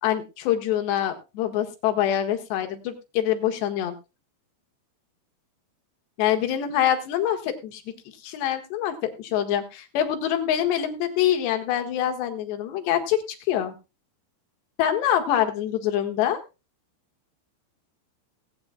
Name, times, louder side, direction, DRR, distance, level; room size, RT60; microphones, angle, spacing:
voice 1, 0.0-4.0 6.2-7.8 8.2-13.2 13.5-13.8 14.8-16.4, left 10 dB, 75° left, 6 dB, 3.5 m, -25 dB
20.0 x 8.8 x 2.2 m, 0.27 s
omnidirectional pair, 5.2 m